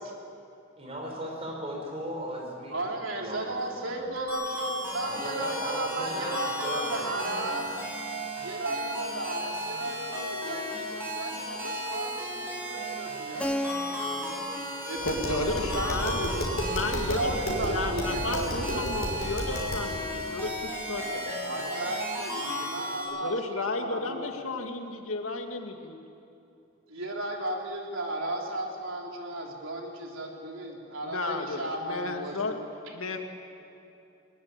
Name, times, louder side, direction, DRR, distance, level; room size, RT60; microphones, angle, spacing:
voice 1, 0.8-2.9 3.2-4.0 5.0-6.3 6.6-7.6, right 1 dB, 30° right, 0 dB, 5.3 m, -37 dB
voice 2, 2.7-7.9 8.4-14.4 14.9-16.5 16.9-19.2 21.4-24.3 26.9-32.6, right 1 dB, 70° right, 0 dB, 3.6 m, -35 dB
sound 1, 4.3-23.0, equal, 10° right, 8.0 m, -35 dB
Keyboard (musical), 13.4-17.9, left 1 dB, 5° left, 0.5 m, -38 dB
voice 3, 15.0-16.2 16.6-17.3 17.7-21.7 23.2-26.0 31.0-32.5 32.9-33.2, left 3 dB, 75° left, 4 dB, 2.2 m, -33 dB
Tap, 15.0-19.9, equal, 45° left, 5.9 m, -33 dB
21.0 x 21.0 x 9.1 m, 2.8 s
head